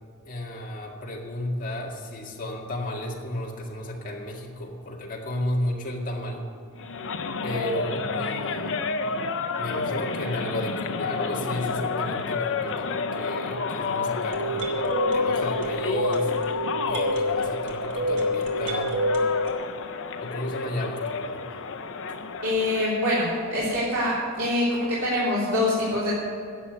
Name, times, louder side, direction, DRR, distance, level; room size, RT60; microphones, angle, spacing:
voice 1, 0.3-6.5 7.4-8.8 9.6-16.3 16.8-19.0 20.2-21.5, left 1 dB, 40° left, -2 dB, 2.0 m, -33 dB
sound 1, 6.8-23.0, left 4 dB, 60° left, 0.8 m, -30 dB
sound 2, 14.3-19.5, left 1 dB, 60° right, 2.0 m, -27 dB
voice 2, 22.4-26.1, left 1 dB, 80° right, -9 dB, 3.5 m, -25 dB
11.0 x 7.5 x 9.4 m, 2.3 s
head